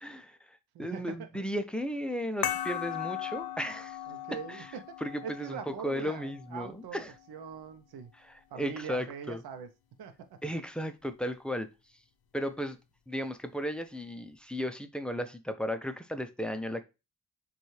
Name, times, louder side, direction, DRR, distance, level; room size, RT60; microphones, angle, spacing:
voice 1, 0.0-4.0 4.5-4.7 5.0-7.1 8.1-9.4 10.4-11.7 12.3-12.8 13.1-16.9, equal, 5° left, 0.4 m, -35 dB
voice 2, 0.7-1.4 4.1-4.8 5.2-7.0 7.3-8.1 8.5-9.7 10.0-10.1, right 7 dB, 75° right, 0.7 m, -42 dB
sound 1, 2.4-7.5, left 10 dB, 70° left, 0.6 m, -38 dB
6.9 x 2.4 x 3.1 m
wide cardioid pair, 120°, 38 cm